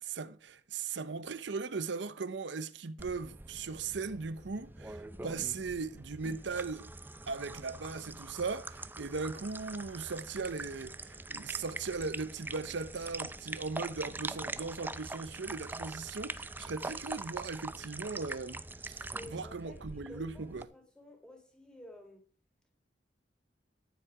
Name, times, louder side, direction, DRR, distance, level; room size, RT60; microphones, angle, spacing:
voice 1, 0.0-6.9 7.3-20.7, right 4 dB, 80° right, 0.7 m, -38 dB
sound 1, 3.0-20.6, right 2 dB, 10° right, 0.6 m, -43 dB
voice 2, 19.1-22.2, left 1 dB, 5° left, 3.4 m, -52 dB
14.5 x 10.5 x 4.8 m
head